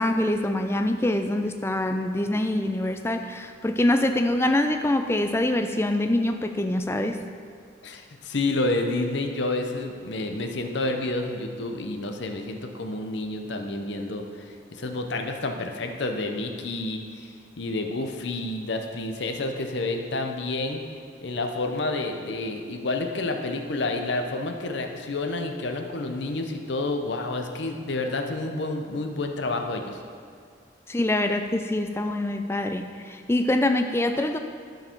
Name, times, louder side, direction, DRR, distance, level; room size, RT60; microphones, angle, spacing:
voice 1, 0.0-7.2 30.9-34.4, left 1 dB, 15° left, 6 dB, 0.4 m, -24 dB
voice 2, 7.8-20.8 21.2-30.0, left 2 dB, 65° left, 4 dB, 0.7 m, -29 dB
12.0 x 4.7 x 4.5 m, 2.1 s
head